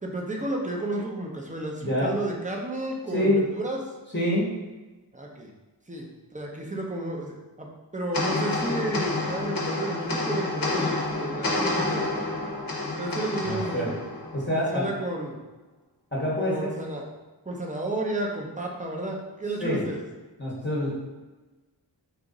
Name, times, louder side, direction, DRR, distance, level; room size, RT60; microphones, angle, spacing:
voice 1, 0.0-3.8 5.1-5.5 5.9-12.3 13.0-14.1 14.6-15.4 16.4-17.0 17.4-20.0, right 1 dB, 20° right, -1 dB, 0.6 m, -32 dB
voice 2, 1.8-2.1 3.1-3.5 4.1-4.6 13.4-13.9 14.3-14.9 16.1-16.7 19.6-19.8 20.4-21.0, left 1 dB, 25° left, -5 dB, 0.9 m, -26 dB
sound 1, 8.1-14.8, left 2 dB, 55° left, 0.7 m, -29 dB
3.0 x 2.5 x 3.7 m, 1.2 s
wide cardioid pair, 45°, 43 cm